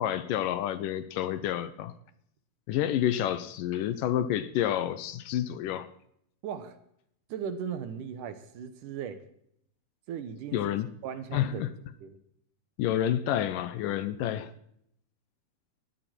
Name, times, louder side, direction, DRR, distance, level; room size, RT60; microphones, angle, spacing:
voice 1, 0.0-1.9 2.7-5.9 10.5-10.9 11.3-11.7 12.8-14.5, left 11 dB, 75° left, 13 dB, 2.3 m, -29 dB
voice 2, 6.4-6.8 7.3-9.2 10.1-10.7 11.0-11.7 12.0-12.2, right 7 dB, 70° right, 11 dB, 2.4 m, -37 dB
21.0 x 14.0 x 4.4 m, 0.71 s
omnidirectional pair, 4.2 m